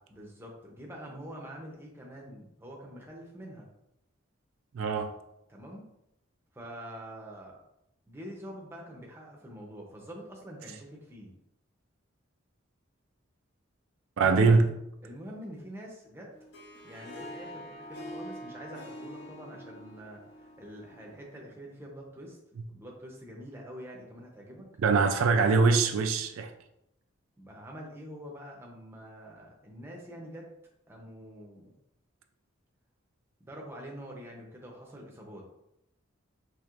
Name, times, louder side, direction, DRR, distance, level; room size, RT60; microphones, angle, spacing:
voice 1, 0.1-3.7 5.5-5.9 6.5-7.6 8.1-11.3 15.0-16.3 16.8-22.4 22.7-24.7 27.4-30.5 30.9-31.7 33.4-35.4, equal, 10° right, 0.6 m, -45 dB
voice 2, 4.7-5.1 14.2-14.7 24.8-26.5, right 4 dB, 80° right, 0.4 m, -23 dB
Harp, 16.3-21.5, equal, 55° left, 0.6 m, -45 dB
4.5 x 3.0 x 2.4 m
head